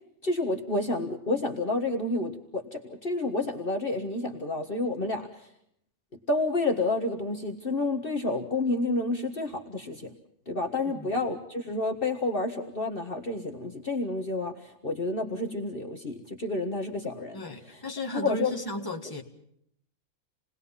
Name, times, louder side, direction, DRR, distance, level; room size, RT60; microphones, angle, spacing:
voice 1, 0.2-5.5 6.3-10.1 10.5-17.4 17.7-17.8 18.1-18.5, left 2 dB, 40° left, 3 dB, 1.7 m, -29 dB
voice 2, 17.3-19.2, left 1 dB, 15° left, 2 dB, 1.9 m, -35 dB
28.5 x 20.0 x 5.6 m, 0.71 s
omnidirectional pair, 1.4 m